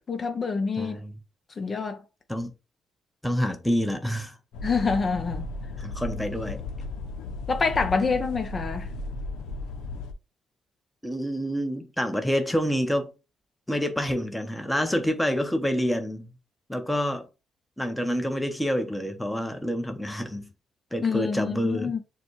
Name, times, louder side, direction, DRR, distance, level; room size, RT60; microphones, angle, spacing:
voice 1, 0.1-1.0 1.6-2.0 4.6-5.5 7.5-8.9 21.0-22.0, left 4 dB, 40° left, 0.7 m, -26 dB
voice 2, 0.8-1.1 2.3-2.5 3.2-4.4 5.8-6.6 11.0-13.1 13.7-16.3 16.7-17.3 17.8-20.5 20.9-21.9, equal, 5° left, 0.8 m, -27 dB
sound 1, 4.5-10.1, left 3 dB, 90° left, 0.6 m, -35 dB
6.7 x 2.3 x 3.1 m
cardioid pair, 90°, 0 cm